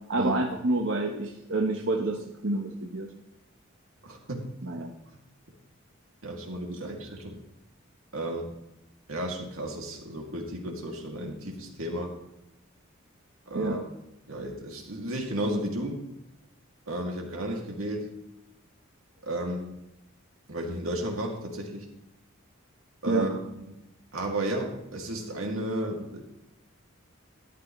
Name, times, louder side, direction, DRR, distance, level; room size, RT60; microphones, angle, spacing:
voice 1, 0.1-3.1 4.6-4.9 13.5-13.8 23.1-23.3, right 2 dB, 65° right, 0 dB, 1.1 m, -28 dB
voice 2, 4.0-4.5 6.2-7.4 8.1-8.5 9.1-12.1 13.5-13.8 14.3-16.1 16.9-18.2 19.3-19.7 20.5-21.9 23.0-23.7 24.1-26.3, right 1 dB, 85° right, 1 dB, 2.6 m, -33 dB
13.5 x 11.5 x 3.2 m, 0.89 s
head